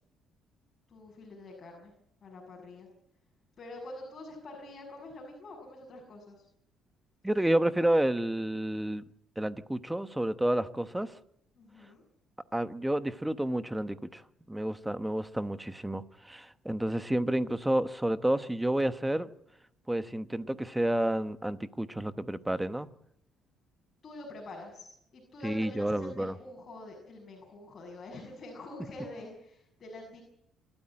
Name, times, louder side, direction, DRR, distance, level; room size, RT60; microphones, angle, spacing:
voice 1, 0.9-1.9 2.2-2.9 3.6-6.4 11.6-12.0 24.0-30.2, left 2 dB, 35° left, 6.6 m, -46 dB
voice 2, 7.2-9.0 9.4-11.1 12.5-14.2 14.5-19.3 19.9-22.9 25.4-26.3, right 1 dB, 5° right, 1.0 m, -30 dB
27.5 x 13.5 x 8.7 m
cardioid pair, 120°, 0 cm